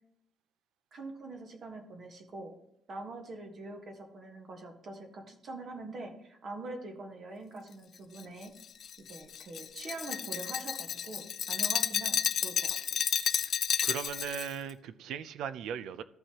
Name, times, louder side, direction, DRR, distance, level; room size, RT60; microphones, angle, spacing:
voice 1, 0.9-2.6 2.9-8.5 9.1-13.0, right 2 dB, 35° right, 1.4 m, -44 dB
Glass, 8.2-14.5, left 8 dB, 40° left, 0.4 m, -31 dB
voice 2, 13.8-16.0, right 8 dB, 70° right, 0.5 m, -38 dB
14.5 x 5.5 x 2.9 m
cardioid pair, 170°, 0 cm